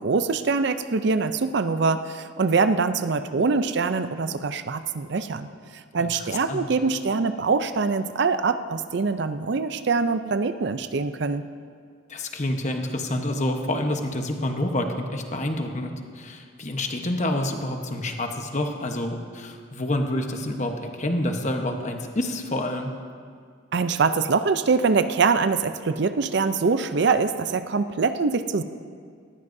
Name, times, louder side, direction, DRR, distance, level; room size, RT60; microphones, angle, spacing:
voice 1, 0.0-5.5 5.9-11.4 23.7-28.6, right 4 dB, 60° right, 11 dB, 0.5 m, -23 dB
voice 2, 6.0-6.7 12.1-22.9, left 1 dB, 40° left, 4 dB, 1.1 m, -28 dB
18.5 x 15.0 x 2.7 m, 2.1 s
head